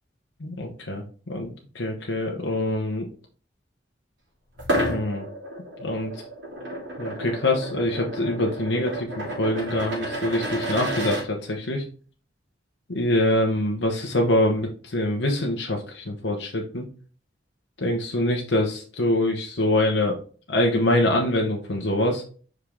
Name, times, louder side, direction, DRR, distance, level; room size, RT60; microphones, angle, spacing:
voice 1, 0.4-3.1 4.9-5.3 5.8-6.2 7.0-11.8 12.9-16.8 17.8-20.2 20.5-22.2, left 1 dB, 80° left, 1 dB, 1.0 m, -24 dB
sound 1, 4.6-11.2, right 1 dB, 85° right, 3.1 m, -31 dB
5.5 x 5.0 x 3.6 m, 0.41 s
head